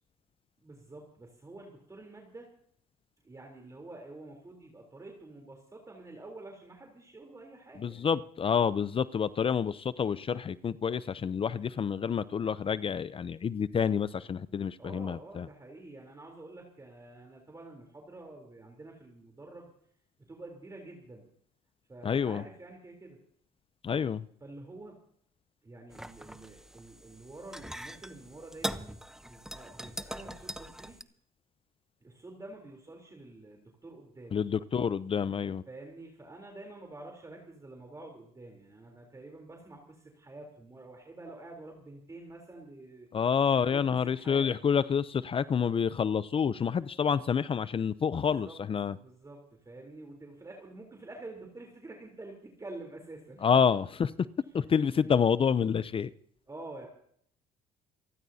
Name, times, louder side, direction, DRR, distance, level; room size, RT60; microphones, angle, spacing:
voice 1, 0.6-2.5 3.2-8.2 14.8-19.7 20.2-21.3 21.9-23.2 24.4-25.0 25.6-29.0 29.2-31.0 32.0-34.4 35.7-43.1 43.5-44.6 48.0-48.6 48.9-53.6 54.4-54.5 56.5-56.9, right 2 dB, 20° right, 3.6 m, -48 dB
voice 2, 7.8-15.5 22.0-22.4 23.8-24.2 34.3-35.6 43.1-49.0 53.4-54.1 54.5-56.1, left 7 dB, 35° left, 0.6 m, -28 dB
sound 1, 25.9-31.0, equal, 5° right, 0.8 m, -41 dB
28.5 x 14.0 x 2.8 m
supercardioid pair, 90°, 16 cm